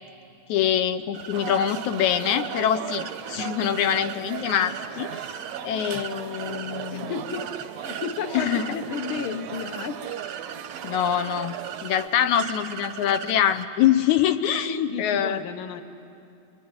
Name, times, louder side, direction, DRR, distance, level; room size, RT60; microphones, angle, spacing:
voice 1, 0.5-5.1 5.6-7.1 8.3-8.7 10.8-11.6 11.8-15.4, left 9 dB, 80° left, 9 dB, 2.2 m, -24 dB
sound 1, 1.1-13.7, right 8 dB, 55° right, 1.2 m, -40 dB
sound 2, 1.3-12.1, right 10 dB, 75° right, 1.8 m, -37 dB
voice 2, 6.7-10.0 14.5-15.8, left 6 dB, 60° left, 8 dB, 1.6 m, -33 dB
26.0 x 22.5 x 9.6 m, 2.5 s
omnidirectional pair, 3.4 m